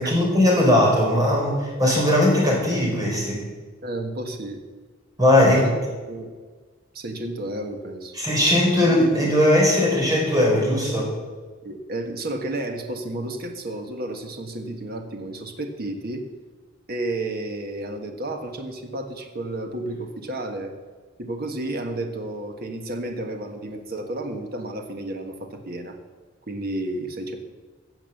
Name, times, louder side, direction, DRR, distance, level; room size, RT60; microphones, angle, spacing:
voice 1, 0.0-3.4 5.2-5.6 8.1-11.1, left 1 dB, 20° right, -2 dB, 4.5 m, -19 dB
voice 2, 3.8-4.6 5.4-5.7 6.0-6.3 6.9-8.1 11.6-16.2 16.9-20.7 21.2-26.0 26.5-27.4, right 2 dB, 55° right, 5 dB, 1.5 m, -31 dB
15.5 x 7.3 x 7.1 m, 1.4 s
head